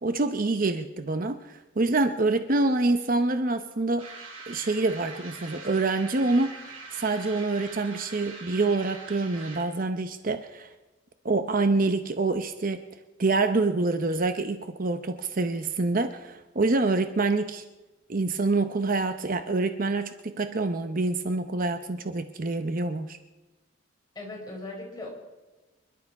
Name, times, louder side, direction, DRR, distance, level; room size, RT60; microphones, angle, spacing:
voice 1, 0.0-4.1 4.5-6.6 6.9-10.7 11.2-12.8 13.2-17.6 18.1-23.2, right 3 dB, 45° right, 9 dB, 0.7 m, -26 dB
sound 1, 4.0-9.8, right 3 dB, 85° right, 5.3 m, -43 dB
voice 2, 24.1-25.1, left 2 dB, 20° left, -2 dB, 4.8 m, -38 dB
27.0 x 11.5 x 4.7 m, 1.1 s
head